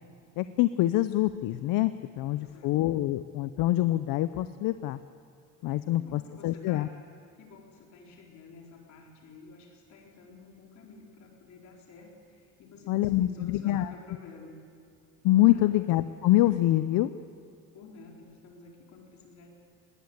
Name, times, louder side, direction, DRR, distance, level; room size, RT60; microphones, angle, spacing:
voice 1, 0.4-5.0 5.6-6.9 12.9-13.9 15.2-17.1, left 15 dB, 80° left, 12 dB, 0.7 m, -25 dB
voice 2, 2.3-2.7 5.8-6.9 7.4-14.6 15.5-15.7 17.7-19.5, left 4 dB, 55° left, 0 dB, 4.2 m, -51 dB
19.5 x 19.0 x 8.1 m, 2.4 s
cardioid pair, 175°, 33 cm